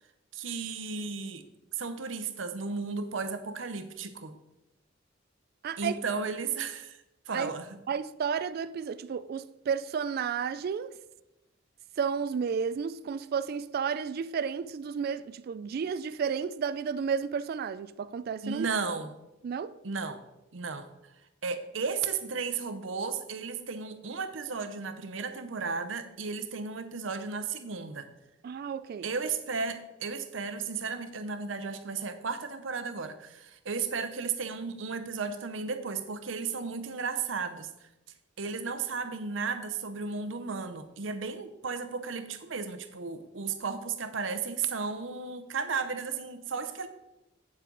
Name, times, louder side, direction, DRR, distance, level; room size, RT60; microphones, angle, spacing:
voice 1, 0.3-1.4 1.7-4.4 5.8-7.0 7.3-7.8 18.4-19.1 19.8-20.2 20.5-20.9 21.4-28.1 29.0-37.9 38.4-46.9, right 5 dB, 85° right, 0.8 m, -34 dB
voice 2, 5.6-6.0 7.3-7.5 7.9-11.0 12.0-18.7 19.4-19.7 28.4-29.1, right 6 dB, 55° right, 0.3 m, -32 dB
8.6 x 7.3 x 3.9 m
head